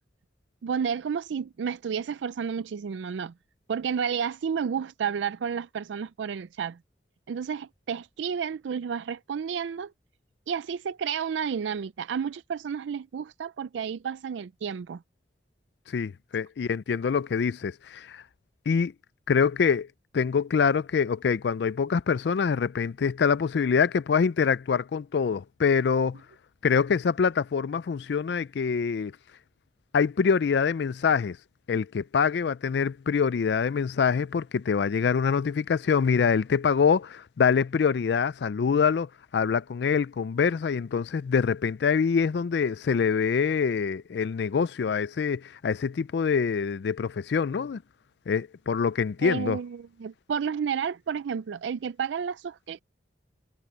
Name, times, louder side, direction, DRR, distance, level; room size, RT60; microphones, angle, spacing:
voice 1, 0.6-3.3 3.7-6.8 7.3-9.9 10.5-15.0 49.2-52.8, right 7 dB, 85° right, 0.4 m, -31 dB
voice 2, 15.9-18.2 18.7-18.9 19.3-19.9 20.1-26.2 26.6-29.1 29.9-31.4 31.7-47.8 48.3-49.6, left 6 dB, 70° left, 0.4 m, -25 dB
head